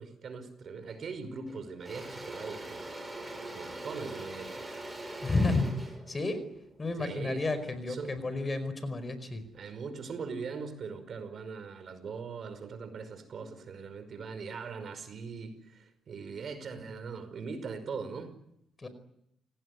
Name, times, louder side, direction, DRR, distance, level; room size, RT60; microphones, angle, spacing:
voice 1, 0.0-2.8 3.5-4.8 7.0-7.5 7.8-8.2 9.5-18.3, right 5 dB, 55° right, 11 dB, 5.3 m, -41 dB
Engine / Drill, 0.9-1.1 1.5-7.6, right 1 dB, 15° right, 6.2 m, -42 dB
voice 2, 5.2-5.7 6.1-6.4 6.8-9.4 18.8-18.9, left 3 dB, 25° left, 13 dB, 5.0 m, -31 dB
29.0 x 18.5 x 9.8 m, 0.79 s
cardioid pair, 90°, 0 cm